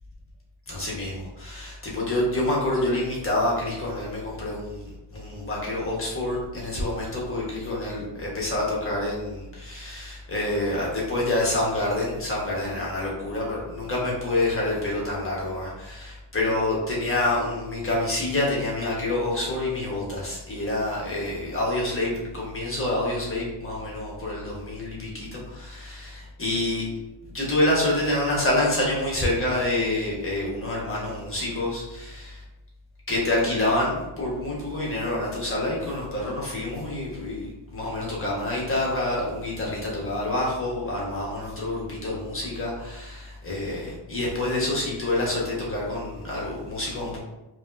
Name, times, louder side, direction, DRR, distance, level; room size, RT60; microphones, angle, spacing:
voice 1, 0.7-26.9 27.3-32.4 33.1-47.2, left 1 dB, 30° left, -4 dB, 1.5 m, -27 dB
5.0 x 3.0 x 2.7 m, 0.98 s
cardioid pair, 110°, 42 cm